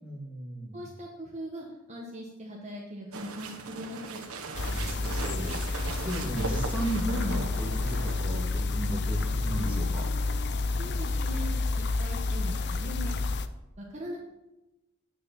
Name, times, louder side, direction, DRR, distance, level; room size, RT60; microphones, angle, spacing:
voice 1, 0.0-0.8 4.6-10.1, right 1 dB, 5° right, -4 dB, 2.5 m, -35 dB
voice 2, 0.7-4.2 10.8-11.4 11.8-13.1 13.8-14.2, equal, 30° right, -2 dB, 1.5 m, -40 dB
sound 1, 3.1-8.5, right 4 dB, 80° right, 1.2 m, -39 dB
sound 2, 4.5-13.5, left 3 dB, 55° left, 0.6 m, -29 dB
9.3 x 6.5 x 6.0 m, 0.96 s
head